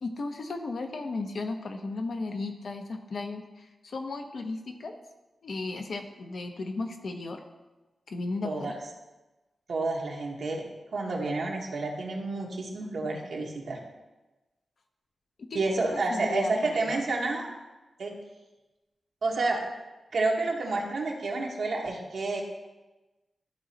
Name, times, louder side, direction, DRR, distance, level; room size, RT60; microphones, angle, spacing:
voice 1, 0.0-5.0 5.4-7.4 8.1-8.8 15.5-17.0, left 3 dB, 65° left, 5 dB, 0.8 m, -35 dB
voice 2, 9.7-10.6 10.9-13.8 15.5-17.5 18.0-18.1 19.2-19.6 20.1-22.4, right 3 dB, 75° right, -1 dB, 1.3 m, -29 dB
12.5 x 4.1 x 2.9 m, 1.1 s
wide cardioid pair, 110°, 0 cm